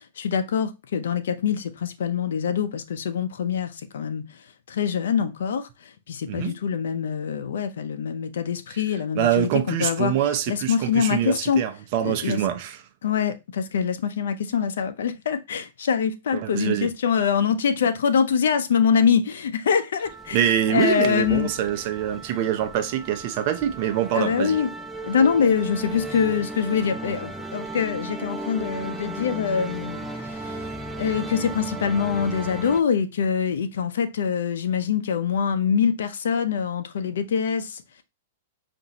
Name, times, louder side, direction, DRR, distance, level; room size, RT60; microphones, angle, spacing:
voice 1, 0.0-10.1 10.5-11.6 12.0-12.4 13.0-21.6 24.1-24.7 25.0-38.0, left 7 dB, 80° left, 0.6 m, -24 dB
voice 2, 9.2-12.8 16.3-16.9 20.3-24.6, right 10 dB, 50° right, 0.6 m, -25 dB
sound 1, 20.0-32.8, right 2 dB, ahead, 0.4 m, -35 dB
5.1 x 2.6 x 2.8 m
hypercardioid pair, 135°, 0 cm